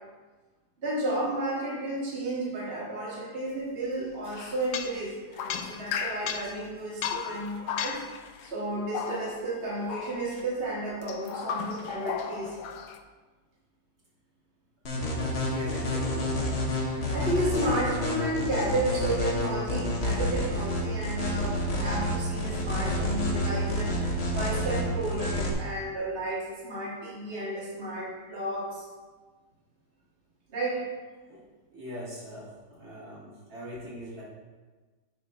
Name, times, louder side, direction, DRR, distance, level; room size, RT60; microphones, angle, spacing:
voice 1, 0.8-8.0 8.4-12.6 16.8-28.9 30.5-30.8, right 1 dB, 35° right, -7 dB, 1.9 m, -32 dB
sound 1, 4.3-6.6 7.0-8.5 8.9-9.6 9.9-10.4 11.0-13.0, left 7 dB, 75° left, 1.1 m, -35 dB
sound 2, 14.8-25.5, left 1 dB, 40° left, 1.2 m, -29 dB
voice 2, 14.9-16.4 31.3-31.4 31.7-34.2, equal, 55° right, -7 dB, 2.3 m, -41 dB
9.4 x 3.7 x 4.9 m, 1.3 s
omnidirectional pair, 1.9 m